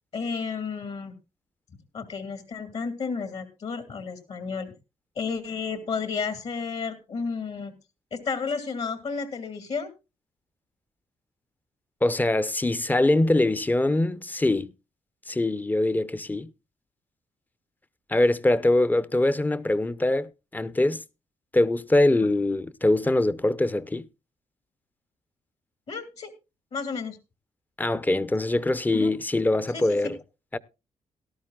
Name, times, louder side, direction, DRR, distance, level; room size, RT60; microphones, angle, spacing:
voice 1, 0.1-1.1 1.9-4.7 5.2-7.7 8.1-9.9 25.9-26.3 26.7-27.2 28.9-29.1 29.7-30.1, left 5 dB, 60° left, 2.3 m, -32 dB
voice 2, 12.0-14.7 15.3-16.5 18.1-21.0 21.5-24.0 27.8-30.2 30.5-30.6, left 2 dB, 15° left, 0.6 m, -23 dB
17.5 x 12.0 x 2.3 m
cardioid pair, 80°, 12 cm